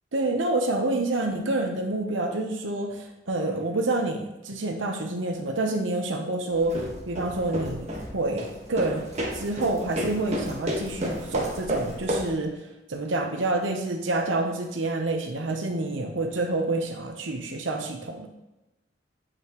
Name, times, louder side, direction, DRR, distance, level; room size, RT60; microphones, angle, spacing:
voice 1, 0.1-9.1 9.3-12.6 12.9-18.3, right 2 dB, 85° right, 3 dB, 0.9 m, -28 dB
sound 1, 6.5-12.4, equal, 35° right, 1.5 m, -32 dB
8.6 x 6.3 x 3.1 m, 0.99 s
head